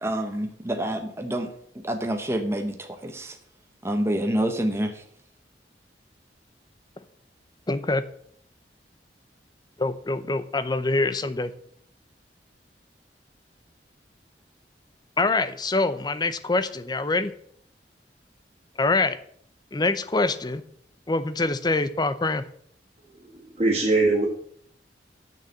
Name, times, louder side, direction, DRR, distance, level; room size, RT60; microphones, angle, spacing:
voice 1, 0.0-3.4 3.8-5.0, right 1 dB, 15° right, 5 dB, 0.9 m, -28 dB
voice 2, 7.7-8.0 9.8-11.5 15.2-17.3 18.8-19.2 19.7-20.6 21.1-22.4, left 3 dB, 25° left, 13 dB, 0.6 m, -25 dB
voice 3, 23.3-24.3, right 2 dB, 35° right, -5 dB, 1.9 m, -22 dB
6.7 x 6.6 x 7.7 m, 0.64 s
head